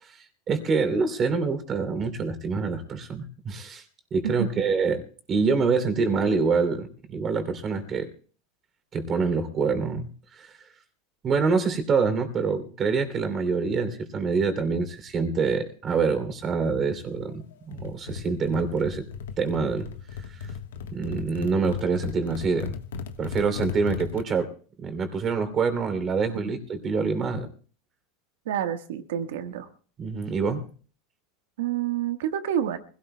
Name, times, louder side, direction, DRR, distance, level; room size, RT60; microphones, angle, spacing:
voice 1, 0.0-3.8 4.1-5.0 5.3-8.1 8.9-10.6 11.2-17.4 17.7-19.0 19.4-19.9 20.3-20.5 20.9-22.8 23.2-24.5 24.8-27.5 30.0-30.6, right 4 dB, 30° right, 9 dB, 3.0 m, -26 dB
sound 1, 17.7-24.2, left 6 dB, 85° left, 1.3 m, -36 dB
voice 2, 28.5-29.7 31.6-32.8, right 10 dB, 80° right, 8 dB, 1.4 m, -28 dB
24.0 x 17.0 x 2.2 m, 0.42 s
supercardioid pair, 115°, 0 cm